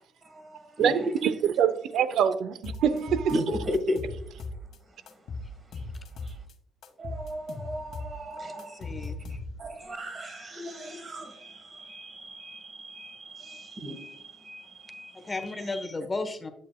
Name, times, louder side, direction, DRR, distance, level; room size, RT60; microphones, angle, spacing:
voice 1, 0.2-1.1 1.7-1.8 2.9-3.0 3.3-4.3 5.7-5.9 6.2-6.4 7.0-15.5, equal, 40° right, 1.5 m, -36 dB
voice 2, 0.8-3.4, right 8 dB, 80° right, 0.6 m, -25 dB
sound 1, 2.6-4.8 5.1-6.5 6.8-9.8, left 3 dB, 75° left, 1.2 m, -38 dB
voice 3, 8.5-9.2 15.1-16.5, left 3 dB, 25° left, 1.1 m, -34 dB
8.3 x 7.6 x 2.3 m
cardioid pair, 90°, 0 cm